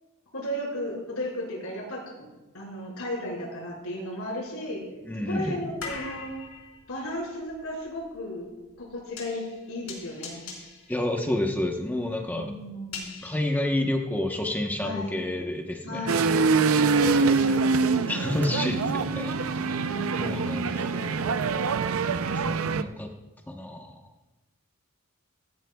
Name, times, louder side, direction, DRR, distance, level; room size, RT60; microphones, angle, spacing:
voice 1, 0.3-2.3 2.5-4.8 5.2-6.3 6.9-8.5 8.8-10.4 12.3-13.2 14.8-15.2 15.8-16.3 16.9-18.6 19.6-21.1, left 1 dB, 90° left, -3 dB, 5.1 m, -35 dB
sound 1, 4.5-14.6 14.9-16.5 16.9-17.0, left 4 dB, 70° left, 4.3 m, -44 dB
voice 2, 5.1-5.6 10.9-12.5 13.2-16.1 18.1-19.8 20.2-20.7 22.3-23.1 23.5-23.9, left 1 dB, 10° left, 1 dB, 1.0 m, -29 dB
sound 2, 16.1-22.8, right 4 dB, 70° right, 0.5 m, -24 dB
17.0 x 15.5 x 2.3 m, 1.1 s
head